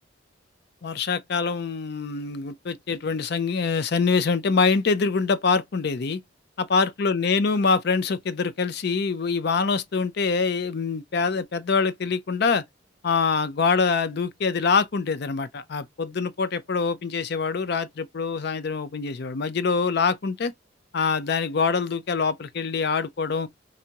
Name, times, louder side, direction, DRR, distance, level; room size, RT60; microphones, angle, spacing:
voice 1, 0.8-6.2 6.6-12.6 13.0-20.5 20.9-23.5, left 4 dB, 55° left, 0.5 m, -24 dB
4.7 x 2.7 x 2.8 m
head